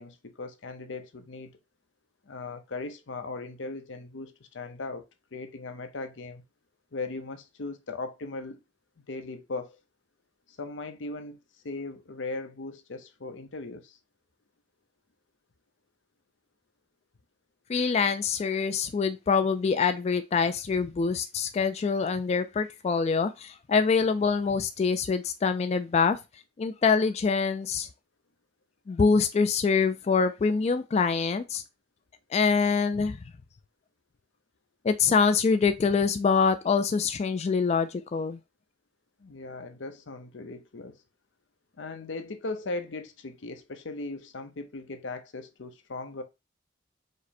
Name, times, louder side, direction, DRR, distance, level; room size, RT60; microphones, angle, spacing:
voice 1, 0.0-1.5 2.3-5.1 5.3-6.4 6.9-8.6 9.1-9.8 10.6-11.4 11.6-14.0 39.2-41.0 41.8-46.2, left 3 dB, 90° left, 0.8 m, -38 dB
voice 2, 17.7-26.2 26.6-27.9 28.9-31.6 32.3-33.2 34.8-38.4, left 5 dB, 35° left, 0.3 m, -25 dB
5.0 x 2.1 x 4.2 m
head